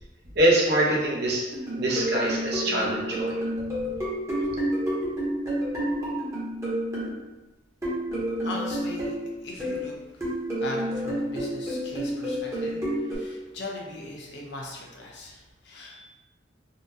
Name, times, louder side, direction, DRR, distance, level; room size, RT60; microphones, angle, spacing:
voice 1, 0.4-1.4 1.7-3.4, right 1 dB, 55° right, -3 dB, 0.7 m, -24 dB
sound 1, 1.5-7.1 7.8-9.9 10.2-13.1, equal, 15° right, 0.9 m, -29 dB
voice 2, 8.4-9.2 9.4-9.9 10.6-16.1, left 2 dB, 60° left, -1 dB, 0.6 m, -39 dB
3.8 x 2.2 x 2.7 m, 1.1 s
head